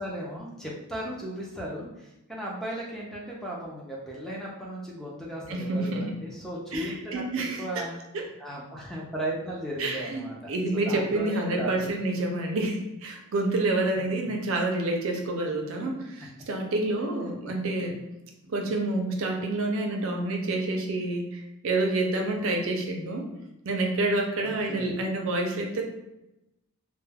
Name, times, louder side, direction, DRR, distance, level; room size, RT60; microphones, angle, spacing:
voice 1, 0.0-8.0 8.4-12.0 14.0-14.4 17.5-17.9 24.4-25.0, right 1 dB, ahead, -4 dB, 0.4 m, -36 dB
voice 2, 5.5-6.1 6.7-7.6 8.1-8.2 9.8-18.0 18.5-23.3 23.6-25.8, right 2 dB, 60° right, 2 dB, 0.4 m, -28 dB
2.2 x 2.1 x 3.3 m, 0.90 s
head